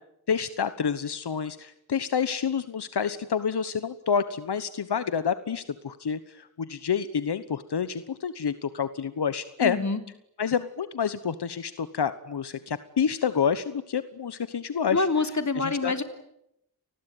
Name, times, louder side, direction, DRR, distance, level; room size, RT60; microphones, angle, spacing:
voice 1, 0.3-9.8 10.4-15.1 15.6-15.9, left 7 dB, 85° left, 13 dB, 1.2 m, -28 dB
voice 2, 9.6-10.0 14.9-16.0, left 3 dB, 45° left, 8 dB, 3.5 m, -26 dB
29.5 x 20.5 x 9.2 m, 0.80 s
wide cardioid pair, 65°, 39 cm